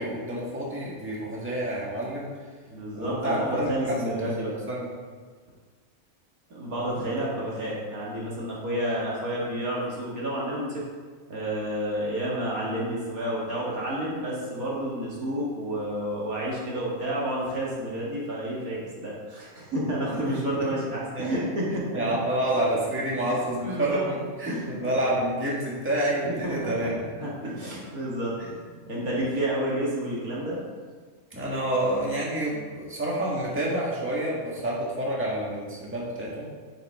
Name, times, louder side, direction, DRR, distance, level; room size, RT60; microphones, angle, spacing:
voice 1, 0.0-2.3 2.9-4.1 4.7-4.9 6.9-7.1 20.3-20.7 21.1-21.4 21.9-27.5 31.3-36.4, right 1 dB, 10° right, -5 dB, 1.6 m, -28 dB
voice 2, 2.7-4.5 6.5-10.8 11.3-22.2 23.2-24.1 24.5-25.1 26.4-28.4 28.7-30.6, right 1 dB, 75° right, -5 dB, 2.5 m, -30 dB
8.8 x 7.3 x 3.7 m, 1.5 s
omnidirectional pair, 1.5 m